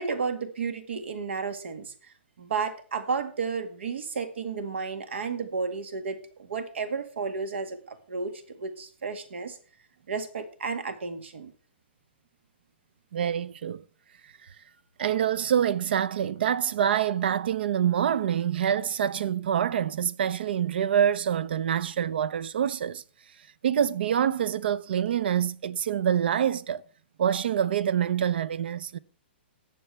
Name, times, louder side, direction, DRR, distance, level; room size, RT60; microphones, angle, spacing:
voice 1, 0.0-9.6 10.1-11.5, right 5 dB, 80° right, 1.9 m, -32 dB
voice 2, 13.1-13.8 15.0-23.0 23.6-26.8 27.2-29.0, right 9 dB, 60° right, 0.6 m, -26 dB
19.5 x 6.9 x 3.4 m
hypercardioid pair, 165°, 6 cm